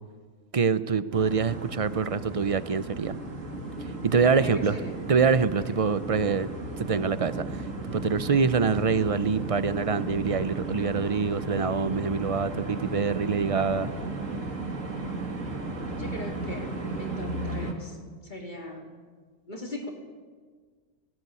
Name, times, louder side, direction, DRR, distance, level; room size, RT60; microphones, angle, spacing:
voice 1, 0.5-3.2 4.0-4.8 5.1-6.5 6.8-13.9, right 5 dB, 35° right, 14 dB, 0.6 m, -25 dB
sound 1, 1.1-17.7, right 2 dB, 75° right, 2.6 m, -35 dB
voice 2, 4.4-5.0 5.6-5.7 15.9-18.0 18.2-18.9 19.5-19.9, left 1 dB, 35° left, 2 dB, 3.1 m, -40 dB
18.0 x 17.5 x 9.7 m, 1.5 s
omnidirectional pair, 1.4 m